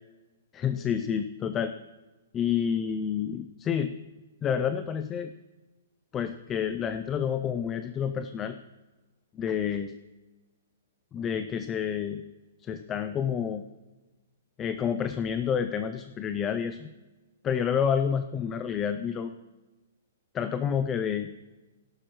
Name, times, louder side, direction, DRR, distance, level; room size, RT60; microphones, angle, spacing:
voice 1, 0.5-1.7 2.3-3.9 4.4-5.3 6.1-8.6 9.3-9.9 11.1-12.2 12.6-13.6 14.6-16.9 17.4-19.3 20.3-21.3, left 8 dB, 15° left, 10 dB, 0.3 m, -29 dB
16.5 x 11.0 x 3.0 m, 1.2 s
hypercardioid pair, 170°, 0 cm